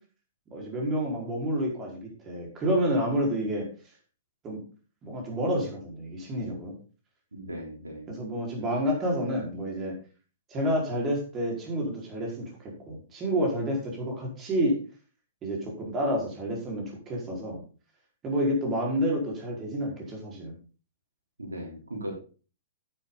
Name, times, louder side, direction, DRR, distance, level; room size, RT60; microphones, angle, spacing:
voice 1, 0.5-3.7 4.4-4.6 5.0-6.7 8.1-10.0 10.5-14.8 15.4-17.6 18.2-20.5, equal, 25° right, -1 dB, 4.7 m, -29 dB
voice 2, 7.3-8.1 21.4-22.1, right 1 dB, 85° right, 0 dB, 3.5 m, -37 dB
10.0 x 9.3 x 4.0 m, 0.37 s
figure-of-eight pair, 115°, 0 cm